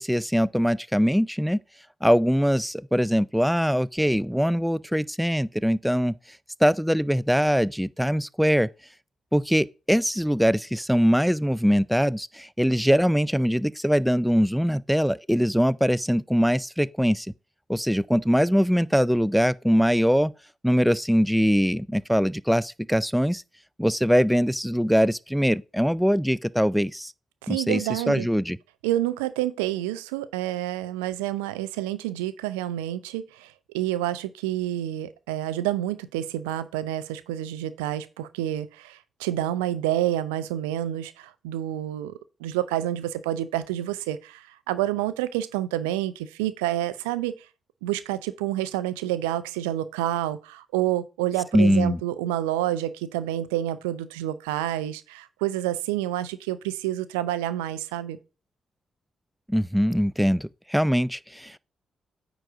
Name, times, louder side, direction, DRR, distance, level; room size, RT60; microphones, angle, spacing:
voice 1, 0.0-1.6 2.0-6.1 6.6-8.7 9.3-17.3 17.7-20.3 20.6-23.4 23.8-27.1 27.5-28.6 51.5-52.0 59.5-61.6, equal, ahead, 0.3 m, -22 dB
voice 2, 27.4-28.3 28.8-47.3 47.8-58.2, right 13 dB, 85° right, 0.4 m, -28 dB
9.0 x 3.9 x 4.7 m
hypercardioid pair, 40°, 0 cm